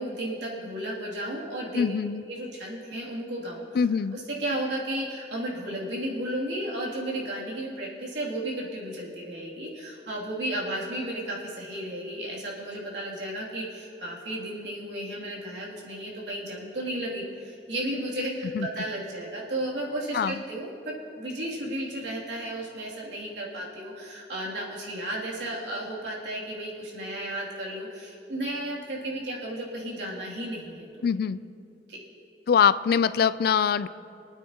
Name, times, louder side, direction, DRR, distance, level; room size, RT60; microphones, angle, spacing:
voice 1, 0.0-1.9 2.3-3.8 4.1-30.9 31.9-32.0, right 1 dB, 85° right, -5 dB, 2.7 m, -33 dB
voice 2, 1.7-2.2 3.8-4.2 18.6-18.7 20.1-20.3 31.0-31.4 32.5-33.9, left 7 dB, 60° left, 15 dB, 0.3 m, -23 dB
25.0 x 9.1 x 2.9 m, 2.6 s
head